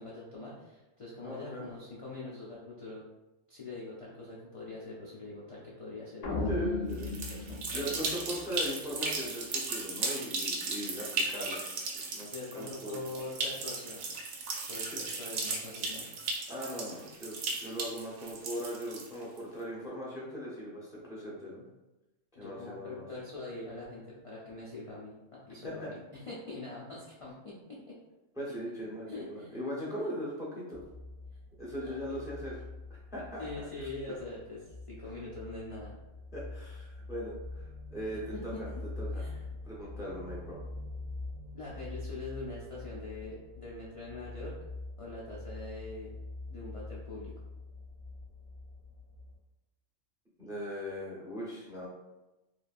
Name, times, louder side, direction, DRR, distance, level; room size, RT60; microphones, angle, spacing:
voice 1, 0.0-3.0 3.5-6.5 7.3-8.0 12.3-14.0 14.7-16.1 22.4-27.9 29.1-29.5 31.8-32.0 33.4-36.0 38.3-38.6 39.2-39.4 41.5-44.6 45.0-46.1 46.5-47.3, left 2 dB, 60° left, -6 dB, 0.3 m, -43 dB
voice 2, 1.2-1.6 6.5-7.1 7.5-11.7 11.9-13.0 14.9-15.0 16.5-21.6 22.4-23.0 25.6-25.9 28.4-30.8 31.6-32.6 32.9-33.9 36.3-38.7 39.0-39.2 39.6-40.6 50.4-51.9, equal, 5° right, -5 dB, 0.4 m, -39 dB
sound 1, 6.2-8.7, left 3 dB, 90° left, 1.0 m, -36 dB
sound 2, 6.9-19.4, right 3 dB, 90° right, 1.0 m, -36 dB
sound 3, 30.7-49.4, left 2 dB, 45° right, 0.8 m, -44 dB
3.1 x 2.5 x 2.4 m, 1.0 s
omnidirectional pair, 1.3 m